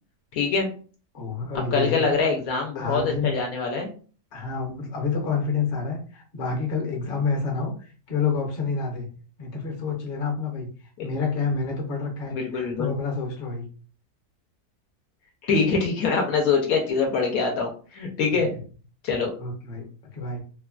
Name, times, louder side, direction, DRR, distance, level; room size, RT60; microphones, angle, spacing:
voice 1, 0.3-0.7 1.5-3.9 11.0-11.1 12.3-12.9 15.4-18.5 19.0-19.3, left 4 dB, 75° left, 2 dB, 1.0 m, -24 dB
voice 2, 1.1-2.0 2.7-3.3 4.3-9.1 9.4-10.7 11.0-13.7 18.3-18.6 19.4-19.9 20.1-20.4, left 4 dB, 45° left, 0 dB, 0.8 m, -28 dB
3.0 x 2.2 x 2.3 m, 0.39 s
omnidirectional pair, 1.6 m